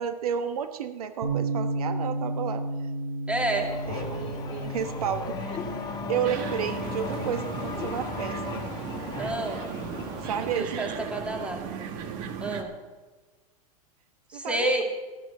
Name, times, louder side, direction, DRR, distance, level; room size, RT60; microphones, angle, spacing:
voice 1, 0.0-2.6 3.9-5.6 6.1-8.6 10.2-10.9 14.3-14.8, right 8 dB, 85° right, 9 dB, 1.2 m, -31 dB
Bass guitar, 1.2-7.5, right 2 dB, 70° right, 3.7 m, -33 dB
voice 2, 3.3-3.7 9.2-9.6 10.4-11.7 12.4-12.7 14.3-14.8, right 1 dB, 5° right, 3 dB, 2.2 m, -29 dB
Race car auto racing / Accelerating revving vroom, 3.4-10.6, left 4 dB, 20° left, 2.1 m, -36 dB
sound 1, 6.2-12.6, right 7 dB, 45° right, 1.5 m, -37 dB
12.5 x 11.5 x 6.2 m, 1.3 s
supercardioid pair, 130°, 19 cm